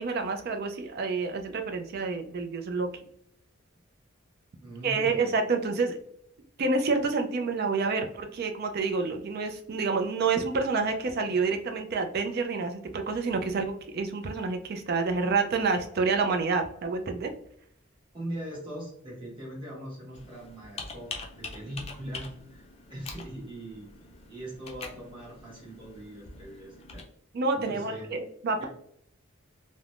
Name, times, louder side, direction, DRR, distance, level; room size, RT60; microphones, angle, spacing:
voice 1, 0.0-2.9 4.8-6.0 6.6-17.3 27.3-28.6, right 4 dB, 50° right, 5 dB, 0.4 m, -28 dB
voice 2, 4.6-5.3 18.1-22.6 22.9-23.9 24.3-27.0 27.5-28.1 28.6-28.7, right 1 dB, 25° right, -5 dB, 1.3 m, -41 dB
Computer keyboard, 20.1-27.0, left 4 dB, 30° left, 0.4 m, -44 dB
3.2 x 2.1 x 2.4 m, 0.69 s
head